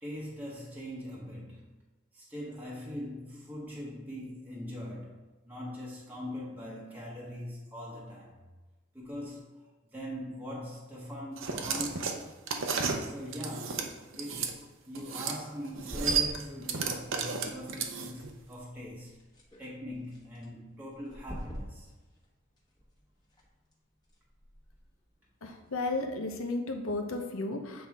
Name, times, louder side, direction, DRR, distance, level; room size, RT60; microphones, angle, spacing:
voice 1, 0.0-1.7 2.1-8.4 8.9-12.2 12.9-19.2 19.6-21.9, equal, 10° right, 1.0 m, -42 dB
sound 1, 11.4-14.5 14.9-15.4 15.6-18.3, right 6 dB, 60° right, 0.7 m, -33 dB
sound 2, 15.7-26.0, equal, 20° left, 1.3 m, -48 dB
voice 2, 25.4-27.9, left 2 dB, 75° left, 0.8 m, -33 dB
7.7 x 4.1 x 3.5 m
head